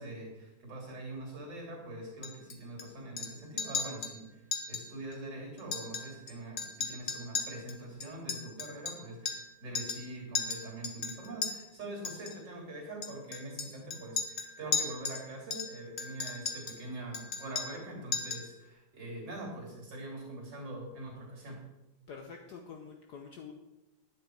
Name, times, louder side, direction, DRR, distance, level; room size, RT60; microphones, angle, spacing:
voice 1, 0.0-4.4 4.7-21.6, right 1 dB, 50° right, -1 dB, 3.6 m, -43 dB
Chink clink, 2.2-2.8 3.2-3.3 3.6-4.1 4.5-4.8 5.1-5.2 5.6-6.3 6.6-9.5 9.7-10.1 10.3-11.5 12.0-12.3 13.0-15.2 15.5-16.8 17.1-17.8 18.1-18.5, left 5 dB, 45° left, 0.9 m, -36 dB
voice 2, 22.1-23.5, left 6 dB, 65° left, 3 dB, 1.1 m, -46 dB
9.9 x 8.3 x 4.6 m, 1.0 s
omnidirectional pair, 2.4 m